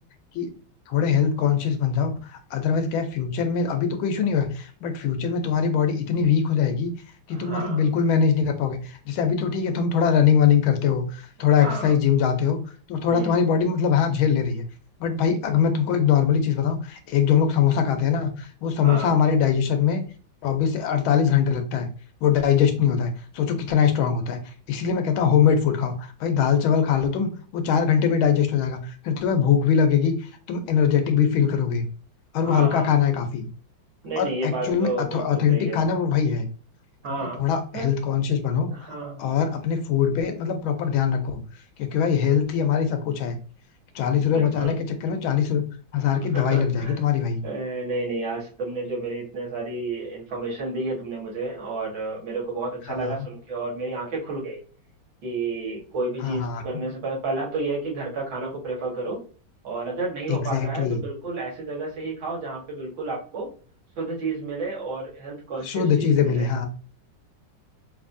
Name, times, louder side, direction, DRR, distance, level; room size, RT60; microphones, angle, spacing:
voice 1, 0.9-6.9 7.3-12.6 12.9-14.6 15.0-20.0 20.4-21.9 22.2-24.4 24.7-30.1 30.5-31.8 32.3-33.5 34.2-36.5 37.2-38.7 39.2-41.4 41.8-43.4 43.9-45.6 45.9-47.4 53.0-53.2 56.2-56.8 60.3-61.0 65.6-66.7, left 7 dB, 90° left, 7 dB, 1.6 m, -22 dB
voice 2, 7.3-7.8 11.4-12.0 13.1-13.4 18.8-19.2 32.4-33.0 34.0-35.8 37.0-37.4 37.7-37.9 38.7-39.2 44.2-44.8 46.3-47.0 47.4-54.6 55.2-59.2 59.6-63.5 64.0-66.5, right 3 dB, 75° right, -4 dB, 2.3 m, -31 dB
5.2 x 2.7 x 2.6 m, 0.40 s
omnidirectional pair, 2.2 m